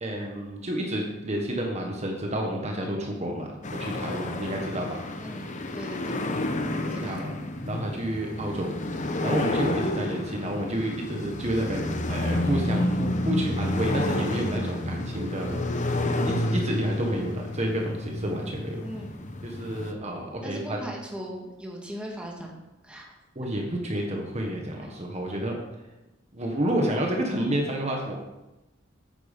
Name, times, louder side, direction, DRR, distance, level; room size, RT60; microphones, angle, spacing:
voice 1, 0.0-5.0 6.8-8.7 9.2-15.6 16.2-18.8 19.4-20.8 23.3-25.6 26.3-28.2, right 1 dB, 35° right, 1 dB, 1.4 m, -30 dB
sound 1, 3.6-19.9, left 1 dB, 40° left, 1.0 m, -30 dB
voice 2, 5.2-6.5 6.9-7.2 18.8-19.2 20.4-22.5 22.8-23.0 24.8-24.9, equal, 5° right, -1 dB, 1.9 m, -39 dB
9.3 x 9.2 x 5.3 m, 1.0 s
head